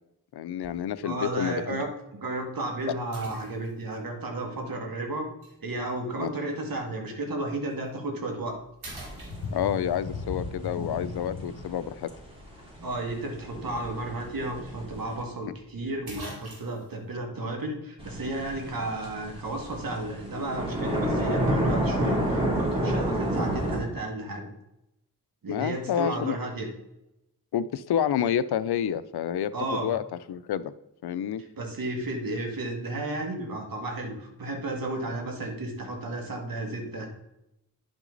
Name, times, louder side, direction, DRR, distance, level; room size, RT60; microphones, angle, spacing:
voice 1, 0.3-1.8 6.2-6.3 9.5-12.1 25.5-26.4 27.5-30.0 30.3-30.7 31.0-31.4, left 9 dB, 90° left, 15 dB, 0.6 m, -29 dB
sound 1, 0.6-0.9 1.6-1.7 3.1-3.9 5.4-5.5 7.7-7.9 8.3-8.5 8.8-9.9 14.0-14.1 14.4-14.5 15.6-15.7 16.1-16.9, right 2 dB, 80° right, 3.5 m, -43 dB
voice 2, 1.0-5.3 5.6-8.6 12.8-24.5 25.4-26.7 29.5-29.9 31.6-37.1, right 2 dB, 65° right, 2 dB, 2.1 m, -33 dB
sound 2, 8.9-15.2 18.0-23.8, right 1 dB, 15° right, 2.9 m, -30 dB
sound 3, 9.2-14.7 15.1-15.3 15.8-15.9, left 4 dB, 70° left, 1.4 m, -38 dB
10.5 x 6.1 x 3.9 m, 0.85 s
wide cardioid pair, 80°, 38 cm